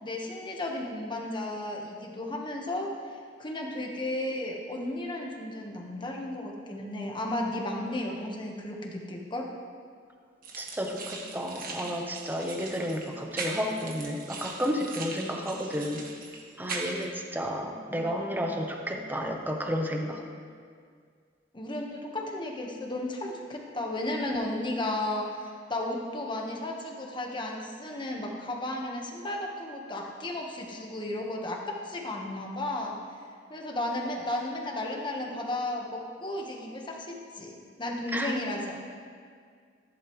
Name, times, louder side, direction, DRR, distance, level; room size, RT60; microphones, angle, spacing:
voice 1, 0.0-9.5 21.5-33.0 33.5-38.9, left 1 dB, 25° left, 0 dB, 1.3 m, -34 dB
sound 1, 10.4-17.1, right 3 dB, 50° right, 1.5 m, -40 dB
voice 2, 10.6-16.0 16.6-20.2 38.1-38.3, equal, 10° right, 2 dB, 0.9 m, -32 dB
14.5 x 11.0 x 3.2 m, 2.1 s
head